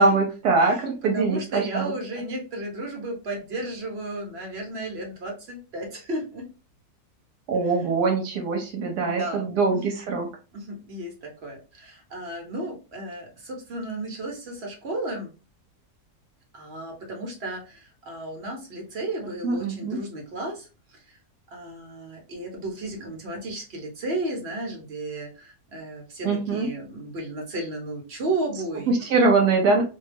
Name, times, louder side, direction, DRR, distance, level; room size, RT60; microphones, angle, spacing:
voice 1, 0.0-1.9 7.5-10.3 19.4-20.0 26.2-26.7 28.9-29.8, right 3 dB, 80° right, 2 dB, 1.2 m, -22 dB
voice 2, 0.6-6.4 9.0-9.6 10.5-15.3 16.5-20.7 21.5-29.0, right 2 dB, 50° right, 0 dB, 0.9 m, -34 dB
2.7 x 2.2 x 3.2 m, 0.33 s
omnidirectional pair, 1.7 m